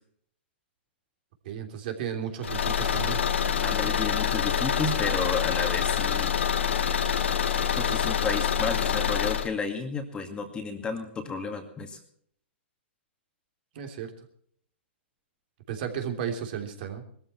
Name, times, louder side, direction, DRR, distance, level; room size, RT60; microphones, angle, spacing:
voice 1, 1.4-3.2 13.7-14.1 15.7-17.0, right 8 dB, 50° right, 4 dB, 3.3 m, -34 dB
Car / Engine, 2.4-9.5, left 8 dB, 85° left, 1.8 m, -26 dB
voice 2, 3.6-6.4 7.8-12.0, left 4 dB, 15° left, 5 dB, 2.2 m, -32 dB
20.0 x 14.0 x 4.4 m, 0.62 s
hypercardioid pair, 135°, 6 cm